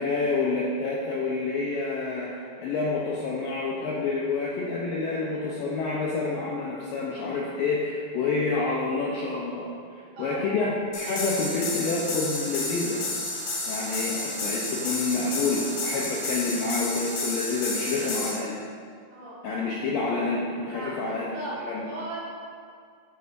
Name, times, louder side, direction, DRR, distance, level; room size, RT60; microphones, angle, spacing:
voice 1, 0.0-13.0 13.7-18.6 19.4-21.8, left 3 dB, 80° left, -4 dB, 2.1 m, -28 dB
sound 1, 10.9-18.3, left 2 dB, 60° left, 3.7 m, -31 dB
voice 2, 19.1-19.4 20.7-22.2, right 2 dB, 55° right, -8 dB, 3.3 m, -37 dB
13.0 x 6.9 x 2.6 m, 2.2 s
omnidirectional pair, 5.0 m